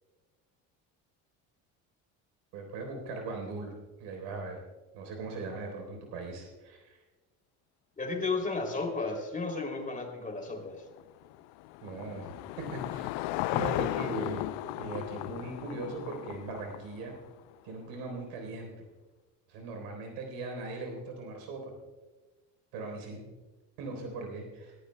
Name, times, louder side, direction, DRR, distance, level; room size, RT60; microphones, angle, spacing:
voice 1, 2.5-3.7 4.0-4.6 4.9-7.0 11.8-12.3 12.7-13.1 13.5-14.5 14.8-17.1 17.6-18.7 19.5-21.7 22.7-23.2 23.8-24.8, right 3 dB, 80° right, 3 dB, 3.8 m, -39 dB
voice 2, 8.0-10.8, left 3 dB, 20° left, 3 dB, 2.8 m, -33 dB
Car passing by / Engine, 10.9-17.4, left 17 dB, 75° left, 0.5 m, -36 dB
20.0 x 14.0 x 2.2 m, 1.3 s
supercardioid pair, 90°, 40 cm